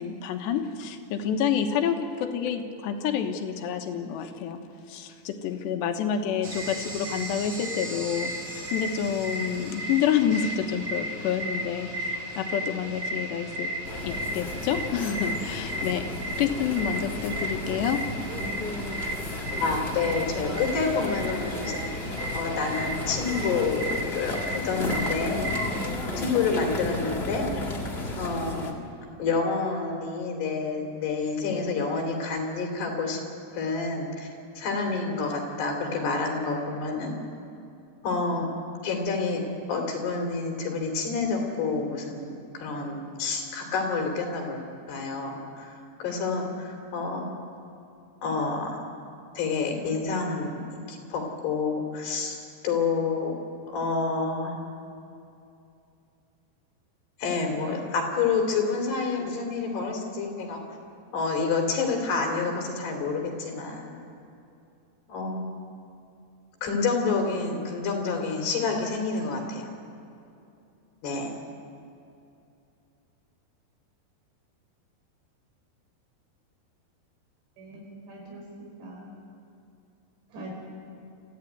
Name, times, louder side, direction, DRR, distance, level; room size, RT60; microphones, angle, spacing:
voice 1, 0.0-4.6 4.9-13.7 14.0-16.0 16.4-18.0, left 8 dB, 85° left, 5 dB, 3.5 m, -28 dB
sound 1, 6.4-25.9, equal, 30° right, 1.8 m, -35 dB
sound 2, 13.8-28.7, left 2 dB, 45° left, 0.7 m, -34 dB
voice 2, 19.6-21.9 22.3-25.5 26.2-27.5 28.2-28.8 29.2-33.2 33.5-34.3 34.6-37.2 38.0-38.5 38.8-44.6 44.9-45.7 46.0-47.3 48.2-48.8 49.4-52.4 52.6-53.4 53.7-54.6 57.2-60.6 61.1-64.0 65.1-65.4 66.6-69.7 71.0-71.3, left 4 dB, 70° left, 2 dB, 5.1 m, -28 dB
voice 3, 77.6-79.1 80.3-80.5, right 1 dB, 85° right, -2 dB, 7.8 m, -43 dB
27.5 x 15.0 x 9.4 m, 2.6 s
omnidirectional pair, 4.9 m